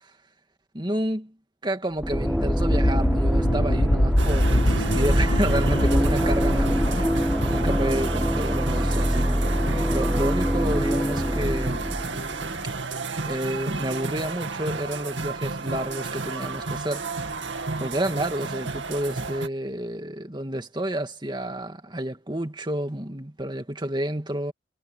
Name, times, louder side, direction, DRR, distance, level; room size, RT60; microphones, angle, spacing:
voice 1, 0.7-1.3 1.6-9.4 9.9-12.0 13.2-17.1 17.8-24.5, right 1 dB, 25° right, 2.2 m, -30 dB
sound 1, 2.0-8.4, equal, 90° left, 3.4 m, -25 dB
sound 2, 2.0-12.8, equal, ahead, 0.5 m, -24 dB
sound 3, 4.2-19.5, right 4 dB, 70° right, 2.2 m, -32 dB
head